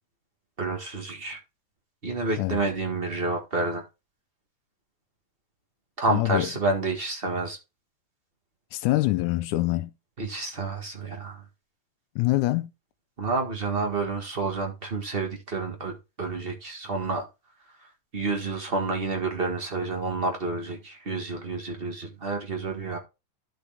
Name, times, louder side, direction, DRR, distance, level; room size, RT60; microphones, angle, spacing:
voice 1, 0.6-1.4 2.0-3.9 6.0-7.6 10.2-11.4 13.2-17.2 18.1-23.0, right 3 dB, 50° right, 0.7 m, -29 dB
voice 2, 6.1-6.5 8.7-9.9 12.2-12.7, left 18 dB, 80° left, 1.8 m, -25 dB
13.0 x 4.4 x 3.4 m
omnidirectional pair, 3.6 m